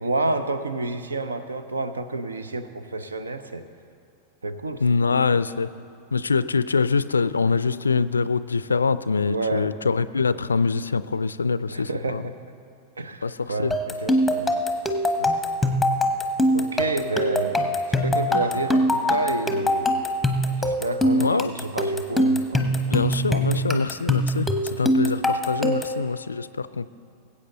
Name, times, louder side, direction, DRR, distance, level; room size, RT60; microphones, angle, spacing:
voice 1, 0.0-3.6 4.4-4.8 5.1-5.2 9.3-9.7 11.7-12.3 13.0-14.5 15.2-15.4 16.5-17.7 18.0-20.0 20.6-23.6, right 2 dB, 75° right, 10 dB, 0.7 m, -29 dB
voice 2, 4.8-5.7 6.1-12.2 13.2-13.7 21.2-21.5 22.7-26.9, left 4 dB, 75° left, 15 dB, 0.3 m, -24 dB
sound 1, 13.7-26.0, equal, ahead, 1.0 m, -23 dB
21.0 x 8.3 x 3.9 m, 2.4 s
figure-of-eight pair, 90°, 0 cm